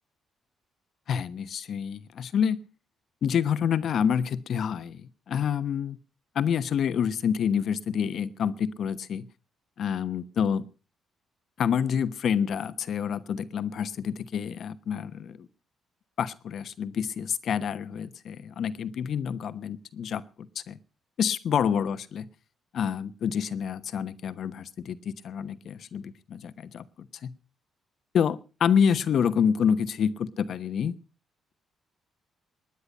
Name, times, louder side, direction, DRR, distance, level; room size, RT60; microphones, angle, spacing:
voice 1, 1.1-2.6 3.2-6.0 6.3-9.2 9.8-10.7 11.6-15.4 16.2-20.8 21.2-22.3 22.7-27.3 28.1-31.0, left 7 dB, 65° left, 13 dB, 1.1 m, -28 dB
20.0 x 9.7 x 5.4 m, 0.36 s
cardioid pair, 80°, 0 cm